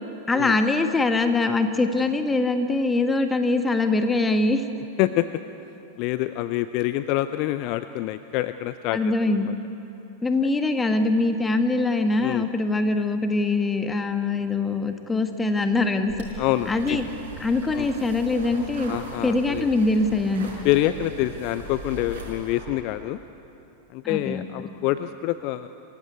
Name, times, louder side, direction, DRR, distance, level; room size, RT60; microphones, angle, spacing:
voice 1, 0.3-4.6 8.9-9.5 10.2-16.1 16.7-17.1 17.4-18.9 19.2-20.5 24.0-24.4, left 3 dB, 10° left, 8 dB, 1.6 m, -23 dB
voice 2, 6.0-9.5 12.2-12.5 16.4-17.0 17.7-17.9 18.9-19.7 20.6-23.2 23.9-25.7, left 15 dB, 45° left, 13 dB, 0.5 m, -26 dB
sound 1, 16.1-22.7, right 2 dB, 60° right, 5.5 m, -39 dB
27.0 x 15.5 x 9.6 m, 3.0 s
figure-of-eight pair, 90°, 0 cm